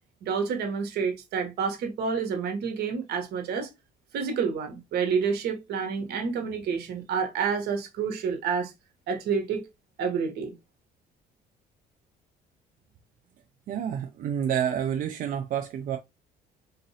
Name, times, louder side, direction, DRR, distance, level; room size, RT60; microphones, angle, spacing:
voice 1, 0.2-3.7 4.1-8.7 9.1-9.6 10.0-10.5, right 6 dB, 75° right, 1.1 m, -29 dB
voice 2, 13.7-16.0, right 9 dB, 55° right, 0.5 m, -29 dB
4.0 x 2.6 x 2.7 m
cardioid pair, 110°, 17 cm